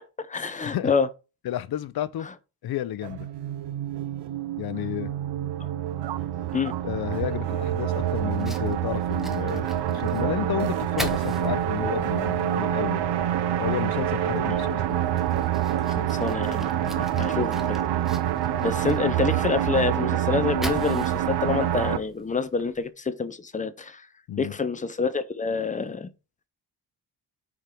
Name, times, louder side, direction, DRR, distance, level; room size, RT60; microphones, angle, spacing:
voice 1, 0.2-1.1 5.6-5.7 6.5-6.7 15.9-24.1 24.4-26.1, left 5 dB, 20° left, 0.6 m, -28 dB
voice 2, 1.4-2.3 2.6-3.3 4.6-5.1 6.6-13.0 13.6-15.0 24.3-24.5, left 12 dB, 65° left, 0.7 m, -32 dB
sound 1, 3.0-22.0, right 11 dB, 85° right, 0.8 m, -26 dB
Fire, 8.3-22.9, equal, ahead, 1.0 m, -43 dB
6.4 x 5.0 x 4.5 m
wide cardioid pair, 155°, 41 cm